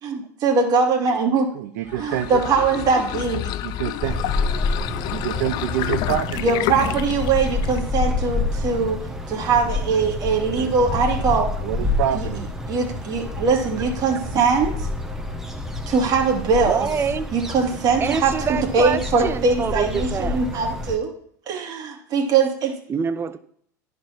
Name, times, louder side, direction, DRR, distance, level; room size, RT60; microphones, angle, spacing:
voice 1, 0.0-1.5 2.0-3.5 6.4-9.0 9.3-11.5 12.1-12.3 12.7-14.7 15.9-16.9 17.3-21.1 21.5-22.7, right 4 dB, 40° right, 2 dB, 2.5 m, -21 dB
voice 2, 1.5-2.4 3.3-4.2 5.1-7.0 10.5-10.7 11.6-12.4, right 12 dB, 70° right, 5 dB, 0.7 m, -27 dB
sound 1, 1.8-7.9, left 14 dB, 50° left, 0.4 m, -29 dB
sound 2, 4.0-21.0, left 2 dB, 5° right, 1.5 m, -28 dB
voice 3, 16.7-17.3 18.0-20.4 22.9-23.4, right 6 dB, 25° right, 13 dB, 0.8 m, -26 dB
10.5 x 4.7 x 5.9 m, 0.63 s
hypercardioid pair, 100°, 9 cm